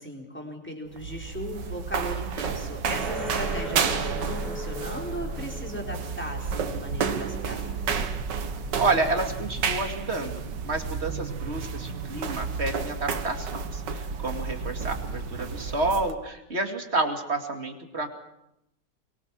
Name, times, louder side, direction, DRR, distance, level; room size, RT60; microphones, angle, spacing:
voice 1, 0.0-7.8, equal, 5° left, 0 dB, 4.3 m, -37 dB
sound 1, 0.9-16.1, right 5 dB, 80° right, 2.0 m, -31 dB
sound 2, 2.9-13.9, right 1 dB, 60° right, 3.9 m, -41 dB
voice 2, 3.5-3.9 8.8-18.1, right 2 dB, 35° right, 4 dB, 2.6 m, -30 dB
23.5 x 22.5 x 6.2 m, 0.82 s
omnidirectional pair, 1.9 m